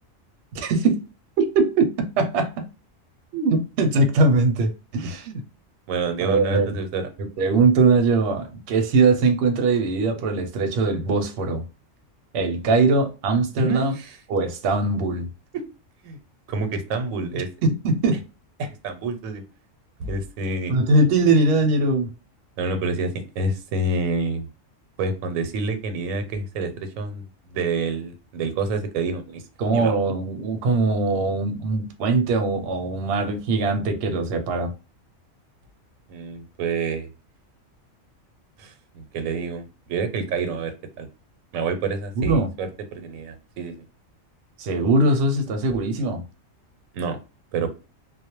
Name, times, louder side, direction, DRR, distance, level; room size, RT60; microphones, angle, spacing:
voice 1, 0.5-1.0 1.4-1.9 2.2-2.6 3.3-5.4 6.2-6.8 7.4-11.6 12.3-13.9 14.3-15.3 17.6-18.2 20.7-22.1 29.6-34.7 42.2-42.5 44.6-46.2, right 3 dB, 65° right, 0.8 m, -21 dB
voice 2, 5.9-7.0 13.6-14.2 15.5-15.6 16.0-16.2 16.5-17.5 18.6-19.4 20.0-20.8 22.6-24.5 25.0-29.4 29.7-29.9 36.1-37.1 38.6-41.1 41.5-43.7 46.9-47.2 47.5-47.7, right 3 dB, 85° right, 1.0 m, -28 dB
2.2 x 2.0 x 2.9 m
omnidirectional pair, 1.4 m